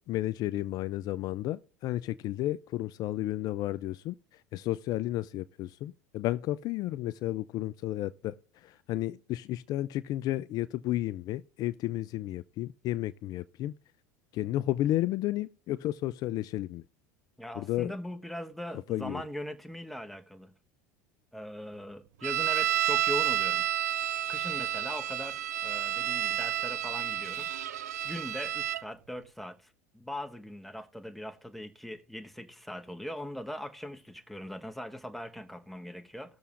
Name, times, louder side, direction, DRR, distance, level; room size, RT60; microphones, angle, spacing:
voice 1, 0.1-13.7 14.3-16.8 17.6-18.0 18.9-19.2, left 15 dB, 50° left, 0.4 m, -32 dB
voice 2, 17.4-20.5 21.3-23.7 24.3-36.4, left 1 dB, ahead, 1.1 m, -41 dB
sound 1, 22.2-28.8, right 12 dB, 85° right, 0.4 m, -30 dB
19.5 x 6.8 x 2.5 m
hypercardioid pair, 90°, 9 cm